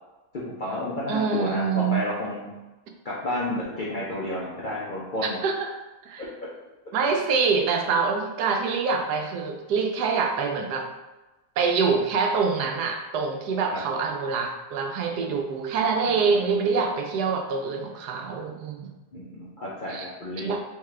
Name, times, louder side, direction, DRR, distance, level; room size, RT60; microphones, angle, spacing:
voice 1, 0.3-2.5 3.0-5.4 13.7-13.8 16.3-16.8 19.1-20.5, left 1 dB, 55° left, -7 dB, 0.5 m, -31 dB
voice 2, 1.1-2.0 5.2-5.7 6.1-6.3 6.9-10.9 11.6-18.9 19.9-20.1 20.4-20.6, right 5 dB, 85° right, 3 dB, 1.2 m, -25 dB
3.6 x 3.6 x 3.2 m, 1.1 s
omnidirectional pair, 1.7 m